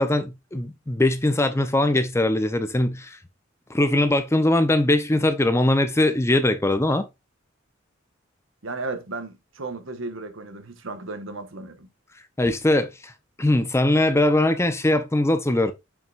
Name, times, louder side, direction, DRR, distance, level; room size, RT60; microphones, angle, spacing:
voice 1, 0.0-3.2 3.7-7.1 12.4-13.1 13.4-15.7, left 1 dB, 15° left, 0.6 m, -21 dB
voice 2, 8.6-11.9, right 3 dB, 90° right, 1.3 m, -34 dB
7.6 x 5.8 x 2.4 m
head